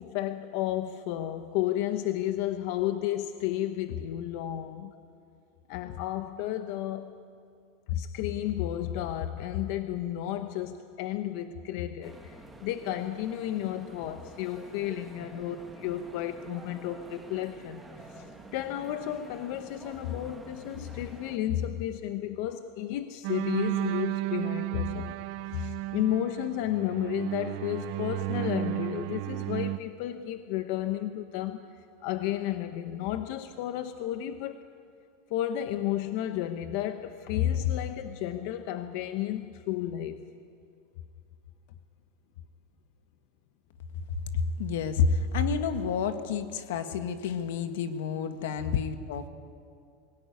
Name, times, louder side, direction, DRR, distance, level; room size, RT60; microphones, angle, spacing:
voice 1, 0.0-4.9 5.7-7.2 7.9-17.8 18.1-34.6 35.3-40.2, left 12 dB, 55° left, 9 dB, 0.9 m, -32 dB
sound 1, 12.0-21.4, right 2 dB, 5° right, 1.8 m, -48 dB
sound 2, 23.2-29.8, right 18 dB, 50° right, 0.7 m, -33 dB
voice 2, 44.3-49.3, left 5 dB, 80° left, 9 dB, 1.7 m, -29 dB
23.0 x 17.5 x 9.6 m, 2.4 s
supercardioid pair, 160°, 0 cm